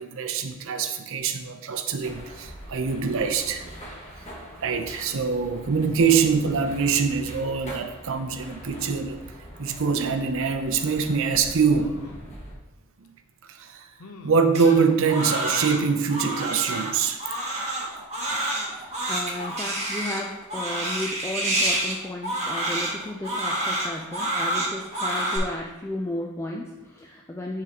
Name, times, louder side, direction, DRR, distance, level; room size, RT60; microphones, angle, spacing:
voice 1, 0.0-9.2 9.6-12.0 13.5-13.9 14.2-17.2, right 5 dB, 60° right, 7 dB, 0.6 m, -24 dB
sound 1, 2.0-12.5, equal, 30° left, 1.4 m, -42 dB
sound 2, 11.7-12.3 13.0-13.1 14.0-14.5 15.8-16.3 16.8-16.9 17.2-17.3, left 2 dB, 75° left, 0.6 m, -46 dB
Crying sobbing, 14.5-25.4, right 1 dB, 30° right, 1.2 m, -28 dB
voice 2, 18.3-27.6, left 1 dB, 10° left, 0 dB, 0.3 m, -34 dB
9.3 x 3.7 x 2.9 m, 1.1 s
head